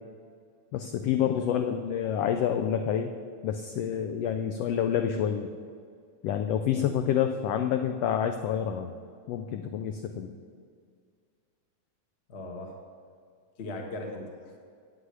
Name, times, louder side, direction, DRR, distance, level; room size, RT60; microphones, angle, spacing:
voice 1, 0.7-3.1 3.4-5.5 6.2-8.9 9.3-10.3, left 9 dB, 85° left, 6 dB, 1.4 m, -28 dB
voice 2, 1.4-1.7 2.2-2.3 6.7-6.9 12.3-12.8 13.6-14.6, left 2 dB, 45° left, 2 dB, 0.9 m, -39 dB
9.8 x 8.5 x 8.1 m, 2.2 s
omnidirectional pair, 3.5 m